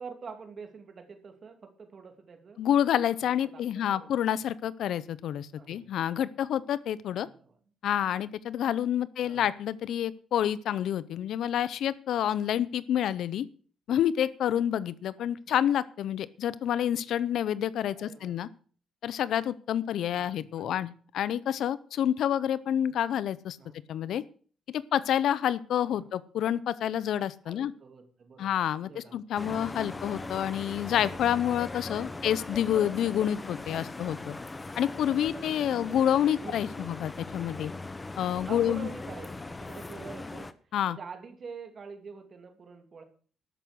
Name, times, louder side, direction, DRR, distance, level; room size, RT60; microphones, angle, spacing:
voice 1, 0.0-2.6 3.2-4.1 5.5-5.9 7.1-7.6 9.2-9.5 15.2-15.6 18.0-18.5 20.1-20.8 23.6-23.8 25.8-26.1 27.4-29.6 32.1-32.4 34.0-34.2 35.8-36.0 36.4-36.9 38.5-43.0, right 5 dB, 45° right, 6 dB, 2.6 m, -46 dB
voice 2, 2.6-7.3 7.8-13.5 13.9-18.5 19.0-23.6 23.9-24.2 24.7-27.7 28.4-34.3 34.8-37.7 38.2-38.9 40.7-41.0, left 10 dB, 75° left, 18 dB, 0.7 m, -28 dB
sound 1, 29.4-40.5, left 3 dB, 20° left, 0.9 m, -40 dB
13.0 x 6.2 x 8.1 m, 0.44 s
cardioid pair, 90°, 0 cm